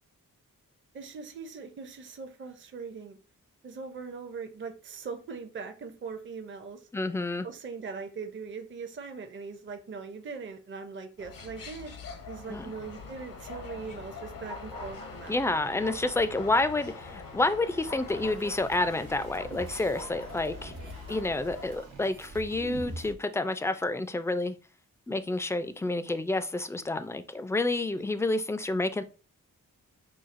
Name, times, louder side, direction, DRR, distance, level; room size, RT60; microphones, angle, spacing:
voice 1, 0.9-3.2 3.6-6.9 7.4-11.9 12.3-15.4, right 5 dB, 35° right, 0.6 m, -41 dB
voice 2, 6.9-7.5 12.5-12.7 15.3-20.7 21.1-24.6 25.1-29.0, left 2 dB, 10° left, 0.3 m, -29 dB
sound 1, 11.2-21.8, left 4 dB, 70° left, 0.9 m, -43 dB
sound 2, 18.1-23.1, right 3 dB, 85° right, 0.9 m, -44 dB
5.6 x 2.3 x 2.5 m
cardioid pair, 65°, 34 cm